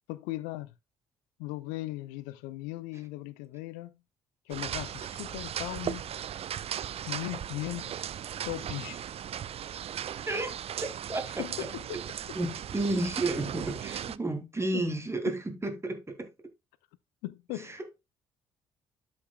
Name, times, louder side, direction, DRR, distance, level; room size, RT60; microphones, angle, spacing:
voice 1, 0.1-0.7 1.4-4.0 4.5-6.1 7.1-8.0 8.4-9.0 11.4-12.0 14.7-14.8 17.2-17.8, left 17 dB, 75° left, 0.6 m, -38 dB
sound 1, 4.5-14.2, right 10 dB, 45° right, 0.4 m, -37 dB
voice 2, 12.4-16.3 17.6-18.0, right 2 dB, 20° right, 2.3 m, -32 dB
12.5 x 5.3 x 2.3 m
hypercardioid pair, 50°, 14 cm